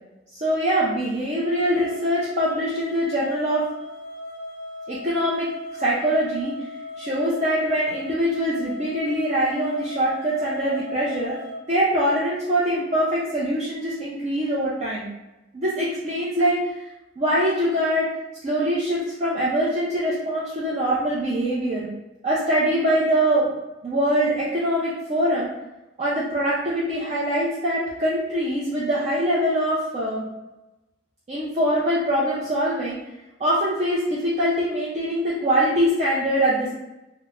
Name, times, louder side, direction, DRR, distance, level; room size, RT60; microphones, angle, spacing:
voice 1, 0.3-3.6 4.9-5.5 5.8-6.5 7.0-11.4 11.7-15.1 15.5-16.9 17.2-18.1 18.4-21.9 22.2-23.5 23.8-25.5 26.0-30.2 31.3-33.0 33.4-36.7, equal, 35° right, -7 dB, 0.5 m, -23 dB
sound 1, 1.4-11.6, left 2 dB, 70° left, 0.4 m, -37 dB
3.3 x 2.0 x 2.4 m, 0.98 s
head